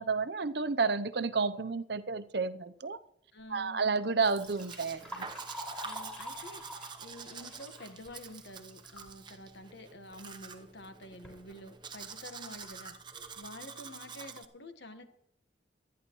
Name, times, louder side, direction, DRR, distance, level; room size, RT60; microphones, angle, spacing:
voice 1, 0.0-3.0 3.5-5.3, right 4 dB, 60° right, 0.7 m, -31 dB
voice 2, 3.3-3.8 5.8-12.9 13.4-15.0, left 1 dB, 65° left, 1.5 m, -49 dB
Liquid, 4.0-9.1 9.5-9.6 10.5-10.6 11.0-11.4 12.0-12.1 12.6-12.7 13.1-13.4, equal, 5° left, 5.4 m, -46 dB
Domestic sounds home sounds, 4.2-14.5, right 5 dB, 25° right, 0.9 m, -47 dB
25.5 x 10.0 x 3.1 m
head